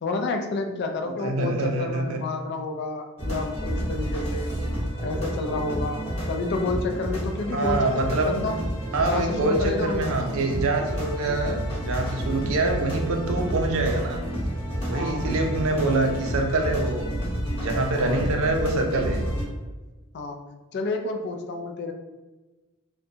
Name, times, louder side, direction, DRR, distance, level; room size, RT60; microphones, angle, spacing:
voice 1, 0.0-4.6 5.0-8.6 9.0-10.1 14.9-15.4 17.9-18.2 20.1-21.9, left 3 dB, 50° left, 4 dB, 0.3 m, -30 dB
voice 2, 1.2-2.2 7.5-8.4 8.9-14.2 14.9-17.0 17.6-19.3, right 2 dB, 70° right, 3 dB, 0.4 m, -25 dB
sound 1, 3.2-19.4, equal, 30° left, 0.9 m, -30 dB
2.7 x 2.2 x 2.6 m, 1.2 s
head